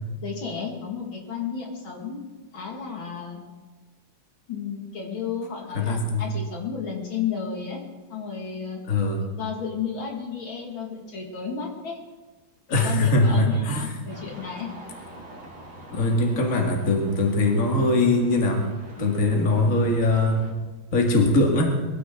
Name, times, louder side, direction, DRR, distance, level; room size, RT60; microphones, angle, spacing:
voice 1, 0.2-2.2 2.5-3.4 4.5-7.8 8.1-8.8 9.4-12.0 12.8-14.7, left 6 dB, 70° left, 0 dB, 3.0 m, -32 dB
voice 2, 5.7-6.3 8.9-9.2 12.7-13.9 15.9-18.7 19.0-20.4 20.9-21.7, left 2 dB, 40° left, 1 dB, 2.5 m, -21 dB
sound 1, 14.1-20.5, right 2 dB, 50° right, 3.0 m, -45 dB
22.0 x 15.0 x 3.9 m, 1.3 s
omnidirectional pair, 2.3 m